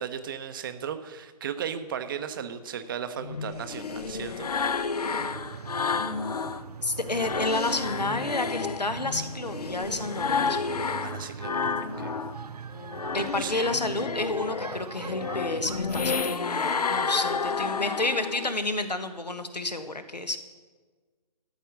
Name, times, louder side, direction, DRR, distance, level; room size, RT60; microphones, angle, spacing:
voice 1, 0.0-4.5 11.0-12.2 13.2-13.8, right 8 dB, 30° right, 10 dB, 0.8 m, -36 dB
sound 1, 3.2-6.6 7.0-12.4 12.7-18.6, left 5 dB, 70° left, 0.8 m, -31 dB
sound 2, 5.2-16.2, right 6 dB, 70° right, 0.5 m, -42 dB
voice 2, 6.8-10.6 13.1-20.4, left 2 dB, 90° left, 8 dB, 1.3 m, -30 dB
13.0 x 5.3 x 8.2 m, 1.4 s
figure-of-eight pair, 140°, 21 cm